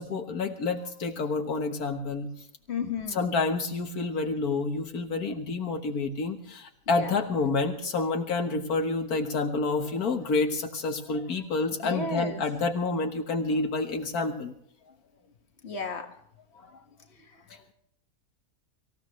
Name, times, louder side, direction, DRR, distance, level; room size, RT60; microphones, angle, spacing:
voice 1, 0.0-2.3 2.8-14.5 16.6-16.7 17.5-17.6, left 3 dB, 80° left, 4 dB, 1.9 m, -29 dB
voice 2, 2.7-3.3 6.9-7.2 11.8-12.4 15.6-16.1, left 4 dB, 45° left, 3 dB, 2.0 m, -33 dB
25.0 x 15.5 x 3.2 m, 0.67 s
omnidirectional pair, 1.6 m